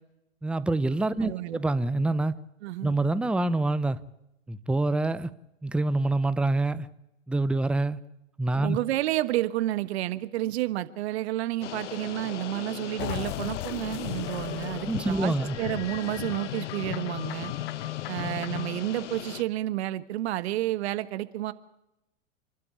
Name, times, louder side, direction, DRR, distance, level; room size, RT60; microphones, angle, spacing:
voice 1, 0.4-2.3 2.8-4.0 4.5-5.3 5.6-6.9 7.3-8.0 8.4-8.8 14.8-15.6, right 2 dB, 5° right, 0.7 m, -26 dB
voice 2, 1.2-1.6 2.6-2.9 8.6-17.5 18.1-21.5, right 15 dB, 60° right, 1.5 m, -30 dB
sound 1, 11.6-19.4, left 10 dB, 75° left, 1.2 m, -39 dB
sound 2, 13.0-18.8, left 15 dB, 60° left, 0.8 m, -36 dB
29.5 x 12.0 x 8.8 m
hypercardioid pair, 105°, 36 cm